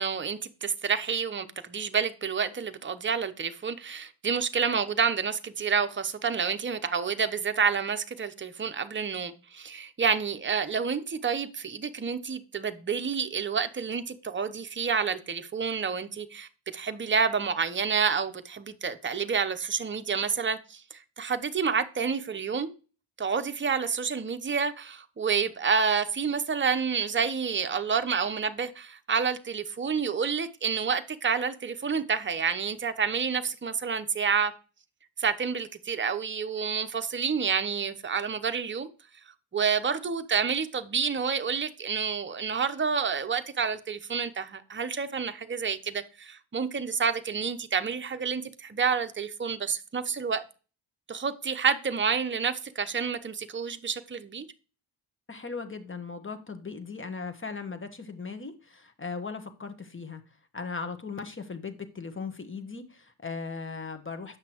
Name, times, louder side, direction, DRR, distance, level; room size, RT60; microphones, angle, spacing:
voice 1, 0.0-22.7 23.2-34.5 35.2-38.9 39.5-50.4 51.1-54.5, right 6 dB, 25° right, 0.8 m, -29 dB
voice 2, 55.3-60.2 60.5-64.4, left 4 dB, 25° left, 1.2 m, -38 dB
8.2 x 5.9 x 2.9 m
cardioid pair, 60°, 47 cm